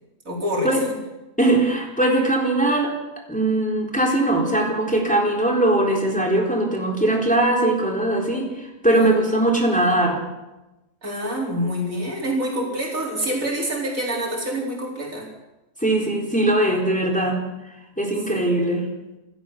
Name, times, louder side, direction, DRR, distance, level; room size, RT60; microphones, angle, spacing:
voice 1, 0.2-0.7 8.9-9.1 11.0-15.3 18.3-18.4, equal, 75° right, -1 dB, 5.0 m, -26 dB
voice 2, 1.4-2.9 3.3-10.2 15.8-17.4 18.0-18.9, right 1 dB, 5° left, 0 dB, 4.0 m, -20 dB
27.5 x 13.5 x 7.1 m, 1.0 s
omnidirectional pair, 1.4 m